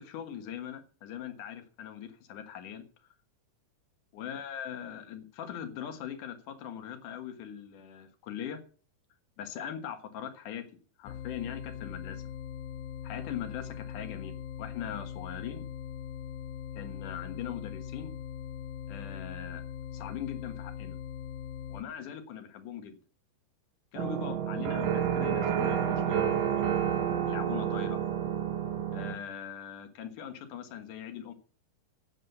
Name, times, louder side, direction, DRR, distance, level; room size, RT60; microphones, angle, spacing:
voice 1, 0.0-2.9 4.1-8.6 9.4-10.7 11.0-12.2 13.0-15.7 16.7-18.1 18.9-19.6 19.9-21.0 21.7-23.0 23.9-26.7 27.2-28.0 28.9-31.3, left 9 dB, 70° left, 7 dB, 2.9 m, -41 dB
sound 1, 11.1-21.8, left 8 dB, 90° left, 2.7 m, -41 dB
sound 2, 24.0-29.2, right 9 dB, 75° right, 3.1 m, -29 dB
9.6 x 7.5 x 8.0 m, 0.40 s
omnidirectional pair, 3.9 m